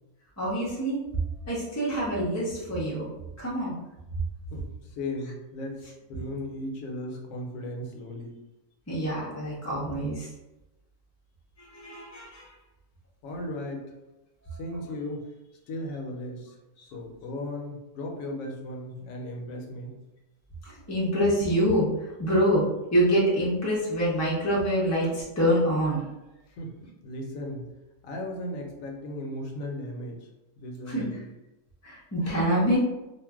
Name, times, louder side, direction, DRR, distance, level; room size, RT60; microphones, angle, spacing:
voice 1, 0.4-1.0 1.5-3.1 3.4-3.7 8.9-10.3 11.6-12.5 14.5-14.6 16.8-16.9 20.6-21.9 22.2-22.6 22.9-26.1 30.9-31.0 31.8-32.8, equal, 25° left, -6 dB, 0.4 m, -26 dB
voice 2, 4.5-8.3 13.2-13.9 14.5-15.3 15.7-16.6 16.9-20.0 26.6-27.6 28.0-30.3 30.6-31.2, left 1 dB, 80° left, 1 dB, 1.1 m, -36 dB
2.5 x 2.2 x 3.4 m, 1.0 s
omnidirectional pair, 1.4 m